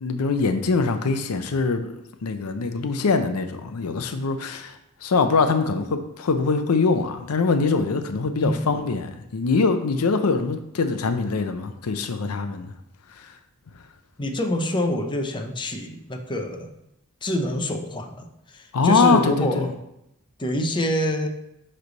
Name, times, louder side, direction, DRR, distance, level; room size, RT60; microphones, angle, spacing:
voice 1, 0.0-12.7 13.1-13.3 18.7-19.7, left 4 dB, 85° left, 8 dB, 0.5 m, -23 dB
voice 2, 14.2-16.7 17.2-19.7 20.4-21.3, left 1 dB, 20° left, 4 dB, 0.6 m, -26 dB
9.6 x 3.3 x 3.9 m, 0.86 s
head